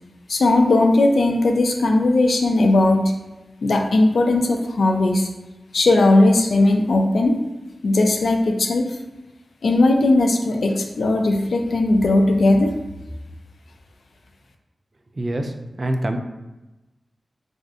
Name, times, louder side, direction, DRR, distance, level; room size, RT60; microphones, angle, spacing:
voice 1, 0.3-3.1 3.6-5.3 5.7-7.4 7.8-8.8 9.6-12.7, left 2 dB, 80° left, 3 dB, 0.4 m, -17 dB
voice 2, 15.2-15.5 15.8-16.2, right 1 dB, 50° right, 5 dB, 0.3 m, -24 dB
3.6 x 2.5 x 2.4 m, 1.0 s
cardioid pair, 45°, 0 cm